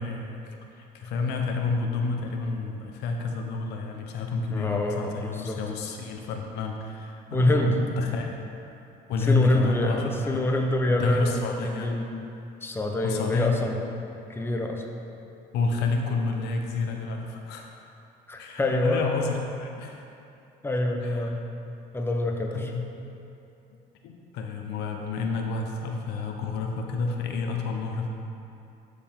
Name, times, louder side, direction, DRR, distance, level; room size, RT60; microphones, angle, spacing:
voice 1, 0.0-8.3 9.1-10.5 10.9-11.9 13.0-13.6 15.5-17.8 18.4-20.0 21.0-21.3 22.5-22.9 24.0-28.1, left 4 dB, 85° left, 3 dB, 0.8 m, -30 dB
voice 2, 4.5-5.6 7.3-7.8 9.3-12.1 12.6-13.8 14.4-14.8 18.3-19.1 20.6-21.4 21.9-22.7, left 1 dB, 15° left, 2 dB, 0.8 m, -26 dB
12.0 x 5.0 x 3.7 m, 2.7 s
cardioid pair, 110°, 17 cm